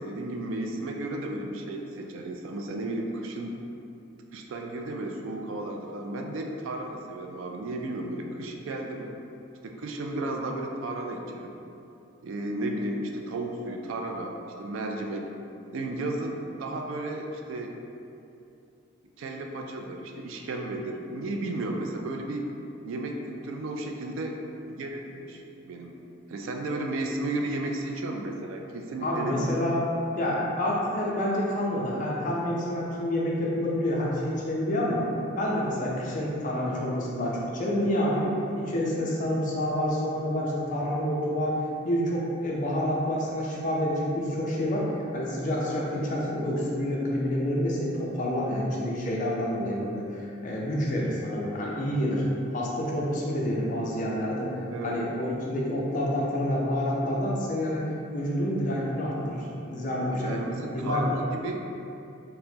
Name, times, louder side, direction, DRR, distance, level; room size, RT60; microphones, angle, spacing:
voice 1, 0.0-3.5 4.3-9.1 9.6-11.6 12.2-15.3 15.7-17.7 19.2-22.5 22.8-24.4 24.7-26.0 26.3-29.5 54.7-55.0 60.1-61.7, right 2 dB, 75° right, 2 dB, 0.3 m, -33 dB
voice 2, 29.0-29.8 30.1-35.0 35.4-38.3 38.5-41.6 41.8-52.2 52.5-54.5 54.8-57.9 58.1-60.4 60.7-61.0, left 1 dB, 40° left, -4 dB, 0.5 m, -28 dB
4.3 x 2.1 x 2.7 m, 2.7 s
head